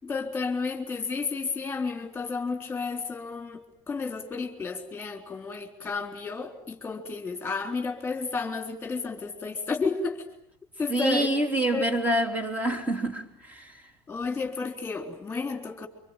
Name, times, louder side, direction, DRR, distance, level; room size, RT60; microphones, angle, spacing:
voice 1, 0.0-3.6 3.9-10.3 10.8-11.3 11.7-12.0 14.1-15.9, left 4 dB, 15° left, 3.8 m, -32 dB
voice 2, 10.9-13.2 13.5-13.7, right 1 dB, 15° right, 3.4 m, -26 dB
25.5 x 25.0 x 9.0 m
supercardioid pair, 120°, 10 cm